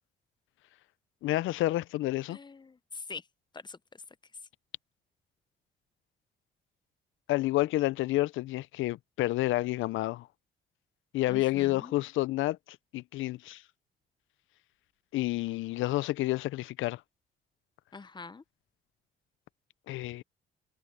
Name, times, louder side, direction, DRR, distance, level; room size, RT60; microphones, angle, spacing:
voice 1, 1.2-2.4 7.3-10.3 11.1-12.6 12.9-13.6 15.1-17.0 19.9-20.2, left 17 dB, 80° left, 0.5 m, -29 dB
voice 2, 2.3-3.2 3.5-3.8 11.3-11.9 17.9-18.4, left 4 dB, 20° left, 0.7 m, -44 dB
cardioid pair, 90°, 20 cm